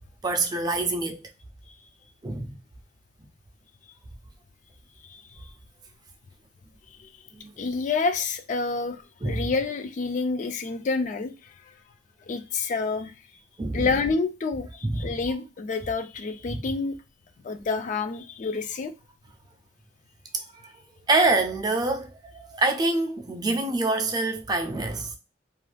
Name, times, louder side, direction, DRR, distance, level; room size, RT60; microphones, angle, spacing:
voice 1, 0.2-1.2 2.2-2.6 7.4-7.5 9.2-9.4 13.6-13.9 14.8-15.1 16.5-16.6 20.3-20.7 21.1-25.2, right 2 dB, 25° right, 0.4 m, -26 dB
voice 2, 7.6-11.3 12.3-13.1 13.7-17.0 17.4-18.9, left 4 dB, 45° left, 0.3 m, -28 dB
2.5 x 2.3 x 3.2 m
head